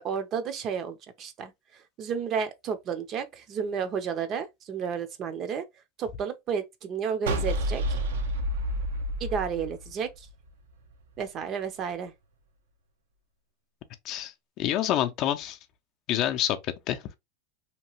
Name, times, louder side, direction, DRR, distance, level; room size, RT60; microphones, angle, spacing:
voice 1, 0.0-5.7 6.0-8.0 9.2-10.3 11.2-12.1, right 7 dB, 40° right, 0.5 m, -32 dB
sound 1, 7.3-10.5, equal, 90° right, 0.6 m, -29 dB
voice 2, 14.0-15.6 16.1-17.0, left 12 dB, 50° left, 0.4 m, -28 dB
2.9 x 2.2 x 3.0 m
supercardioid pair, 120°, 0 cm